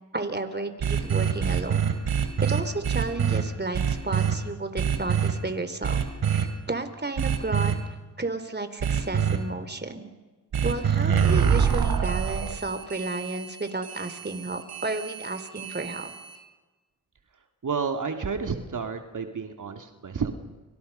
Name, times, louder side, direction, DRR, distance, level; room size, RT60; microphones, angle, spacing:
voice 1, 0.1-1.9 2.4-7.7 8.2-10.1 10.6-16.1, right 2 dB, 30° right, 9 dB, 3.7 m, -32 dB
sound 1, 0.8-3.4 3.7-4.3 4.8-5.3 5.8-6.5 7.2-7.7 8.8-9.4 10.5-16.4, right 7 dB, 80° right, 3.0 m, -25 dB
voice 2, 17.6-20.4, right 5 dB, 55° right, 5 dB, 2.5 m, -30 dB
30.0 x 25.5 x 5.6 m, 1.2 s
supercardioid pair, 45°, 37 cm